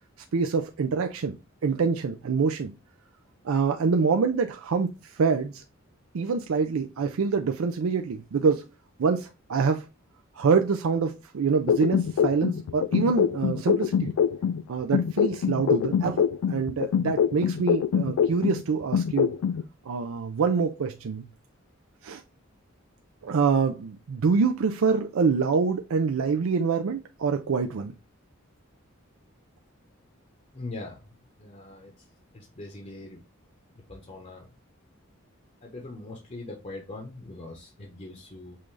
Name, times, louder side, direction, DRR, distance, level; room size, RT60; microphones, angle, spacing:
voice 1, 0.3-1.3 1.6-2.7 3.4-5.6 6.1-8.7 9.0-9.9 10.4-14.1 14.7-19.3 19.9-21.2 22.0-22.2 23.2-27.9, right 5 dB, 80° right, 0.4 m, -25 dB
sound 1, 11.7-14.6 14.9-18.6 18.9-19.6, left 7 dB, 85° left, 0.3 m, -24 dB
voice 2, 30.5-33.2 33.7-34.5 35.6-38.6, left 2 dB, 35° left, 0.8 m, -42 dB
5.6 x 2.5 x 3.1 m
head